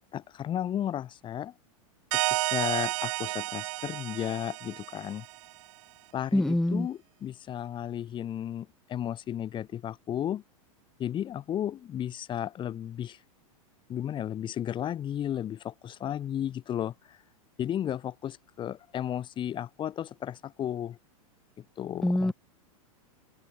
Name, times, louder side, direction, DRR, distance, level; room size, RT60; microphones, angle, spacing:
voice 1, 0.1-1.5 2.1-5.3 6.1-10.4 11.0-13.2 13.9-17.2 17.6-21.0 21.8-22.3, left 10 dB, 25° left, 3.7 m, -34 dB
sound 1, 2.1-5.5, right 22 dB, 55° right, 1.3 m, -31 dB
voice 2, 6.3-6.9 22.0-22.3, left 1 dB, 5° left, 1.1 m, -25 dB
open air
supercardioid pair, 135°, 18 cm